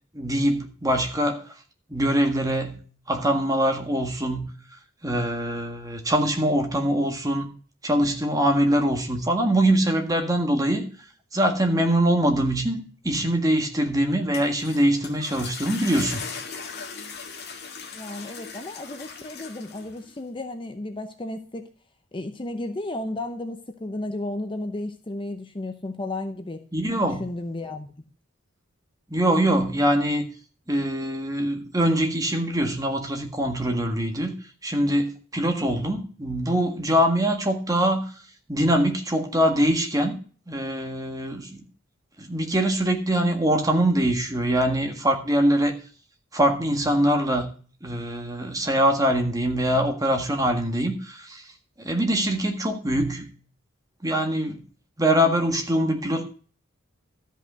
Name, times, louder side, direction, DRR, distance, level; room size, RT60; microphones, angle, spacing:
voice 1, 0.1-1.4 1.9-2.8 3.1-4.5 5.0-7.5 7.8-10.9 11.3-16.2 26.7-27.3 29.1-30.2 30.7-34.3 34.6-38.0 38.5-40.2 40.5-41.5 42.2-45.8 46.3-47.5 47.8-51.4 51.8-53.3 54.0-54.6 55.0-56.3, right 1 dB, 15° right, 4 dB, 1.7 m, -23 dB
sound 1, 14.1-20.2, left 5 dB, 55° left, 1.8 m, -38 dB
voice 2, 17.9-21.7 22.1-26.6 27.0-27.9, left 2 dB, 25° left, 7 dB, 0.8 m, -33 dB
13.0 x 5.6 x 6.2 m, 0.41 s
head